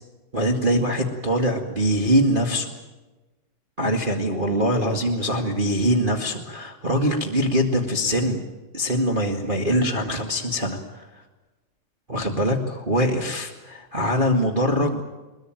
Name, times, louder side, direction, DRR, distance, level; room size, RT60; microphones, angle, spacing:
voice 1, 0.3-2.7 3.8-8.4 8.7-11.1 12.1-15.0, equal, 55° right, 1 dB, 0.5 m, -23 dB
22.0 x 21.5 x 9.0 m, 1.1 s
omnidirectional pair, 4.8 m